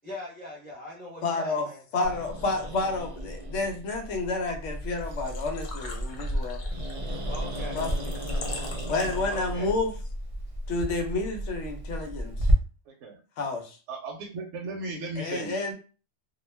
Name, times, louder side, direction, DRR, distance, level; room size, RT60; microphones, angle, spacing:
voice 1, 0.0-1.8 7.2-7.8 9.3-9.7, left 1 dB, 10° left, 0.6 m, -41 dB
voice 2, 1.2-1.7 1.9-6.6 7.7-8.1 8.9-9.9 10.7-12.5 13.4-13.8 15.2-15.7, left 3 dB, 80° left, 1.0 m, -30 dB
Growling, 2.0-12.5, equal, 50° right, 0.4 m, -33 dB
Engine / Trickle dribble / Fill (with liquid), 4.9-9.7, left 3 dB, 55° left, 0.6 m, -43 dB
voice 3, 12.9-13.2 13.9-15.6, right 2 dB, 75° right, 0.9 m, -36 dB
2.2 x 2.2 x 3.2 m
omnidirectional pair, 1.2 m